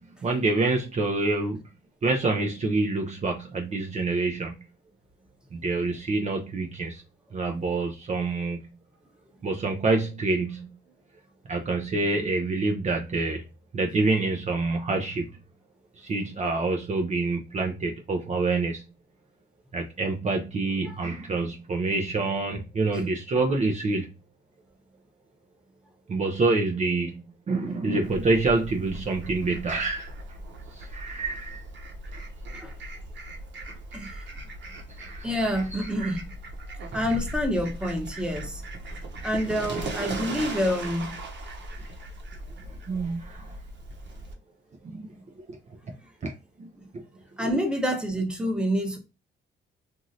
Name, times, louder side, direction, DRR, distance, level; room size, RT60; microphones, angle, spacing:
voice 1, 0.2-1.6 2.0-4.5 5.5-7.0 7.3-8.7 9.4-10.7 11.5-13.4 13.7-15.3 16.0-18.8 19.7-24.1 26.1-30.1 30.7-31.6 32.1-32.2 35.0-35.3 35.7-36.1 36.9-37.0 42.9-43.6 44.8-45.1 46.2-46.3 46.6-46.7, right 3 dB, 35° right, 0.5 m, -27 dB
Fowl, 28.0-44.3, right 2 dB, 65° right, 1.0 m, -38 dB
voice 2, 35.2-36.3 36.9-38.6 39.2-41.1 47.4-49.0, equal, 5° right, 0.8 m, -27 dB
3.0 x 2.6 x 2.6 m
cardioid pair, 90°, 20 cm